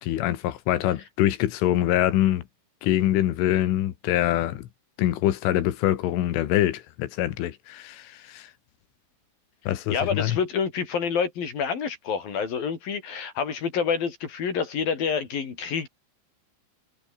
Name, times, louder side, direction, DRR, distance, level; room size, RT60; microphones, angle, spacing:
voice 1, 0.0-2.4 2.8-4.7 5.0-8.5 9.7-10.4, left 13 dB, 85° left, 4.2 m, -24 dB
voice 2, 9.9-15.9, left 6 dB, 50° left, 5.1 m, -27 dB
omnidirectional pair, 5.5 m